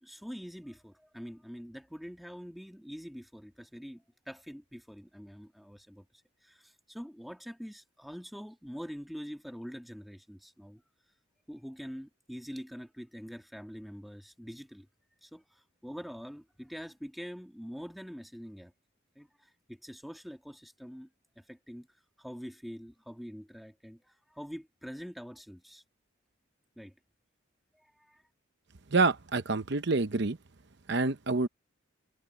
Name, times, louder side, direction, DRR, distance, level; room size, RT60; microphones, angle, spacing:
voice 1, 0.0-6.1 6.4-10.8 11.5-14.9 15.2-18.7 19.2-21.1 21.4-21.9 22.2-25.8 26.8-26.9 28.0-28.2, equal, ahead, 1.9 m, -45 dB
voice 2, 28.9-30.4 30.9-31.5, right 3 dB, 55° right, 0.8 m, -27 dB
head